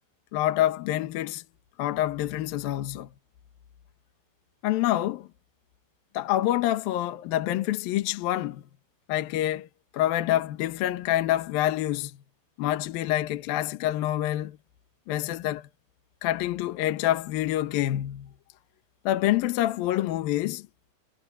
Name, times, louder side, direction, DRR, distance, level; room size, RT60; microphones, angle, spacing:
voice 1, 0.3-1.4 1.8-3.1 4.6-5.3 6.1-8.6 9.1-9.7 9.9-12.2 12.6-14.6 15.1-15.7 16.2-18.3 19.0-20.7, left 14 dB, 70° left, 2.3 m, -27 dB
omnidirectional pair, 5.9 m